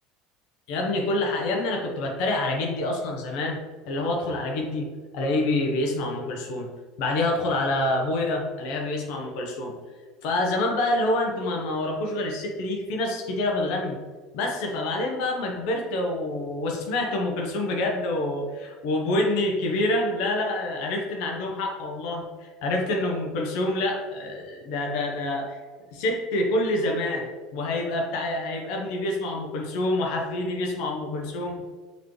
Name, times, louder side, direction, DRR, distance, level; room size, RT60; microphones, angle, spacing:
voice 1, 0.7-3.6 3.8-4.9 5.1-6.7 7.0-9.7 10.2-14.0 14.3-25.6 25.9-31.6, left 2 dB, 70° left, 1 dB, 0.7 m, -27 dB
5.2 x 3.1 x 3.1 m, 1.4 s
supercardioid pair, 95°, 0 cm